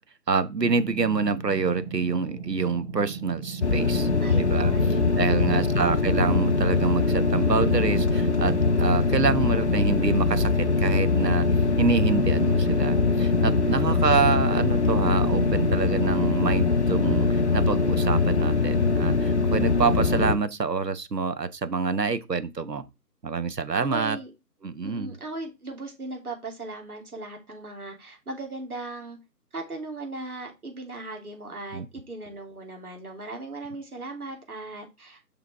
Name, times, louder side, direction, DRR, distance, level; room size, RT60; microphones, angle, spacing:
voice 1, 0.3-4.1 4.4-4.7 5.2-11.5 11.8-22.9 23.2-24.2 24.6-25.1 31.7-31.9, right 5 dB, 80° right, 1.1 m, -27 dB
sound 1, 0.6-16.6, right 6 dB, 20° right, 1.4 m, -37 dB
sound 2, 3.6-20.3, left 4 dB, 45° left, 0.7 m, -22 dB
voice 2, 4.2-5.9 13.6-14.3 23.8-24.3 24.8-29.2 29.5-35.2, right 2 dB, 65° right, 3.0 m, -38 dB
7.0 x 6.0 x 3.4 m
figure-of-eight pair, 155°, 48 cm